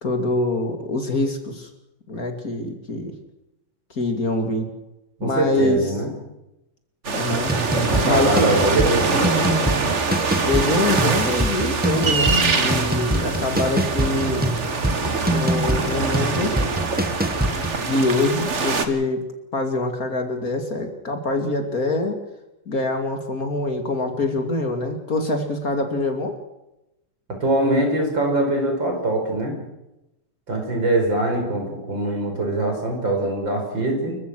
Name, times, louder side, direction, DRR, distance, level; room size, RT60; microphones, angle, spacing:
voice 1, 0.0-1.7 2.1-3.1 4.0-4.7 5.2-5.8 7.1-7.5 8.0-8.6 10.5-14.5 15.3-16.6 17.8-19.3 19.5-22.2 22.7-26.4, left 2 dB, 50° left, 6 dB, 2.8 m, -24 dB
voice 2, 5.2-6.1 7.7-9.3 15.7-15.8 27.4-29.6 30.5-34.2, right 2 dB, 75° right, 3 dB, 5.6 m, -23 dB
sound 1, 7.0-18.9, right 4 dB, 40° right, 1.8 m, -24 dB
sound 2, 7.5-17.8, right 1 dB, 5° right, 1.0 m, -25 dB
29.0 x 15.5 x 6.2 m, 0.93 s
omnidirectional pair, 2.1 m